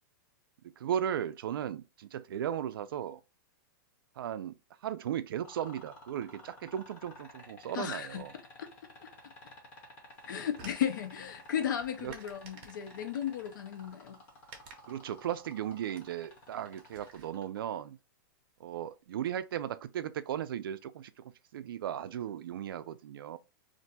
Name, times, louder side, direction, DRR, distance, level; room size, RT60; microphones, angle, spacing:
voice 1, 0.6-3.2 4.2-4.5 4.8-8.4 12.0-12.2 14.9-18.0 18.6-23.4, right 10 dB, 90° right, 0.4 m, -36 dB
sound 1, 5.4-17.6 19.3-19.4, left 2 dB, 15° left, 0.6 m, -52 dB
voice 2, 7.7-8.2 8.6-8.9 10.3-14.2, left 9 dB, 60° left, 0.5 m, -35 dB
sound 2, 10.1-17.3, right 5 dB, 30° right, 0.6 m, -56 dB
2.5 x 2.2 x 4.0 m
supercardioid pair, 175°, 12 cm